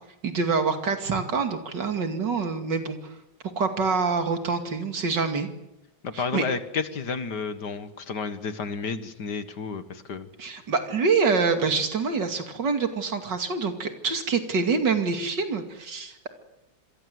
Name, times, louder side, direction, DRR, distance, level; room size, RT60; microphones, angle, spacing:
voice 1, 0.2-3.0 3.6-5.5 6.1-6.4 10.4-16.3, right 4 dB, 65° right, 6 dB, 3.1 m, -26 dB
voice 2, 6.0-10.3, left 5 dB, 60° left, 11 dB, 2.2 m, -31 dB
27.0 x 22.5 x 7.9 m, 0.92 s
omnidirectional pair, 2.0 m